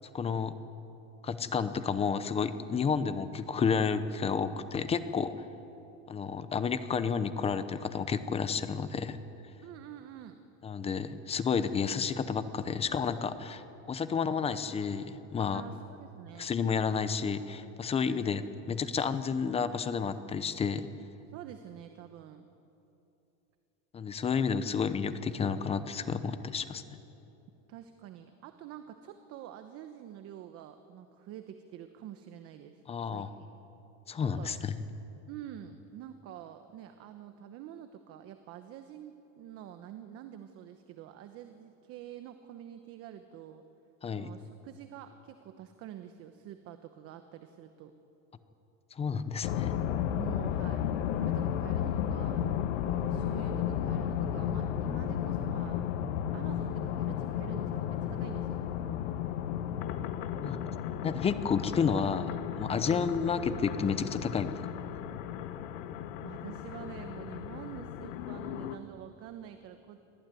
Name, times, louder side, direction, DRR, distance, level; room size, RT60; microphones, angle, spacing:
voice 1, 0.1-0.5 1.2-5.3 6.1-9.2 10.6-15.6 16.4-18.4 18.7-20.9 23.9-26.8 32.9-33.3 34.1-34.8 44.0-44.3 48.9-49.7 60.4-60.7 61.0-64.5, left 6 dB, 15° left, 12 dB, 0.7 m, -31 dB
voice 2, 9.6-10.4 15.5-16.5 18.0-18.7 21.3-22.4 27.7-33.3 34.2-34.6 35.3-43.6 44.1-47.9 50.2-52.4 52.9-55.8 56.3-58.6 62.7-62.9 66.2-70.0, right 10 dB, 40° right, 8 dB, 1.0 m, -47 dB
sound 1, 49.4-68.8, left 9 dB, 75° left, 1.3 m, -34 dB
24.0 x 15.5 x 9.2 m, 2.9 s
supercardioid pair, 155°, 37 cm